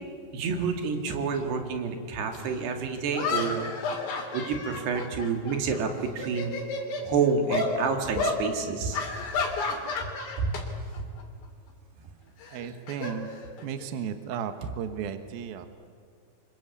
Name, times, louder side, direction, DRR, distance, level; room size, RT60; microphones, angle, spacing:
voice 1, 0.3-3.7 4.3-6.5 7.0-9.0 10.4-10.6 11.0-11.1, right 5 dB, 90° right, 5 dB, 4.3 m, -28 dB
sound 1, 2.3-2.4 3.1-5.8 6.1-7.1 7.5-7.7 8.2-8.4 8.9-10.6 10.9-11.2 12.4-13.9, left 4 dB, 65° left, 4.9 m, -31 dB
voice 2, 12.5-13.3 13.6-15.7, right 8 dB, 70° right, 8 dB, 3.0 m, -34 dB
27.5 x 24.5 x 8.5 m, 2.1 s
omnidirectional pair, 4.7 m